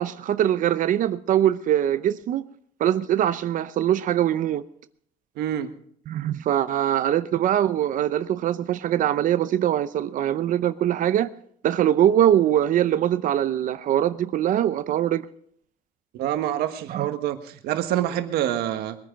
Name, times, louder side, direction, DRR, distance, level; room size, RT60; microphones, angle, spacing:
voice 1, 0.0-2.4 2.8-4.6 6.1-11.3 11.6-15.2 16.9-17.1, right 11 dB, 55° right, 0.7 m, -22 dB
voice 2, 5.4-5.7 16.1-19.0, right 12 dB, 85° right, 1.4 m, -26 dB
21.5 x 10.0 x 5.2 m
cardioid pair, 135°, 16 cm